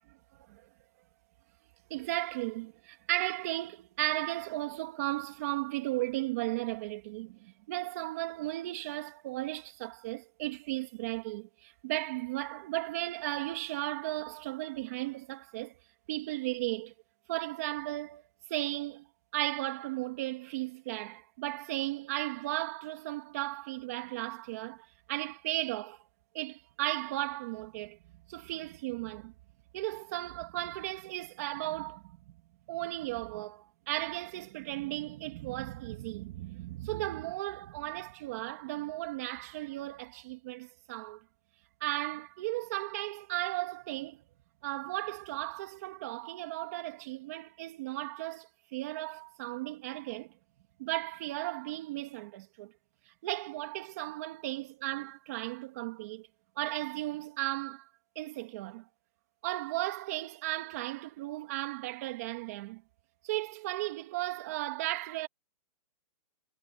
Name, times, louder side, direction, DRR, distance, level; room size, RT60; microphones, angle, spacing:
voice 1, 1.9-15.8 16.1-16.9 17.3-18.2 18.5-19.1 19.3-26.0 26.3-28.0 28.3-29.3 29.7-32.4 32.7-41.2 41.8-44.2 44.6-50.3 50.8-52.7 53.1-56.3 56.6-57.9 58.1-58.8 59.4-62.8 63.2-65.3, right 18 dB, 25° right, 2.8 m, -35 dB
hypercardioid pair, 180°, 20 cm